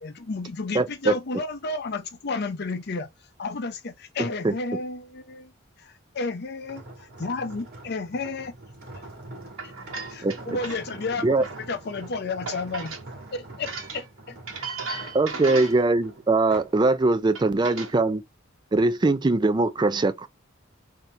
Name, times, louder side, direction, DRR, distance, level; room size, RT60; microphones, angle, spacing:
voice 1, 0.0-3.1 3.4-5.5 5.8-8.5 10.5-12.9 13.3-14.0, left 3 dB, 55° left, 0.6 m, -32 dB
voice 2, 0.7-1.1 4.4-4.5 10.2-10.3 11.2-11.4 15.1-18.2 18.7-20.3, right 2 dB, 20° right, 0.4 m, -21 dB
sound 1, 6.6-16.9 17.3-17.6, right 2 dB, 55° right, 1.6 m, -44 dB
voice 3, 9.6-10.8 11.4-11.6 12.5-13.0 13.7-14.0 14.5-15.8 17.3-17.9, right 4 dB, 75° right, 1.1 m, -36 dB
4.1 x 2.8 x 3.2 m
head